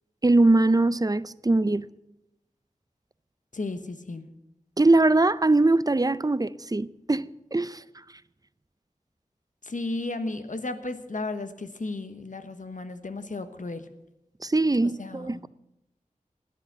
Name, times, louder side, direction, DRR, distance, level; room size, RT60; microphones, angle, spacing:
voice 1, 0.2-1.9 4.8-7.8 14.4-15.5, right 2 dB, 25° right, 0.5 m, -22 dB
voice 2, 3.5-4.3 9.6-13.9 14.8-15.4, left 2 dB, 70° left, 1.2 m, -34 dB
12.0 x 10.0 x 8.1 m
wide cardioid pair, 45°, 14 cm